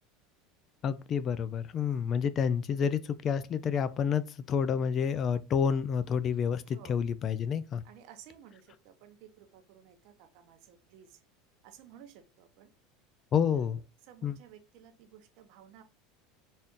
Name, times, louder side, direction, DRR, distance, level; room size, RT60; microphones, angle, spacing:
voice 1, 0.8-7.8 13.3-13.8 14.2-14.4, left 7 dB, 35° left, 0.4 m, -29 dB
voice 2, 6.6-7.0 7.8-11.2 11.6-12.7 13.5-15.8, right 9 dB, 65° right, 0.8 m, -55 dB
4.2 x 2.5 x 3.5 m
supercardioid pair, 120°, 0 cm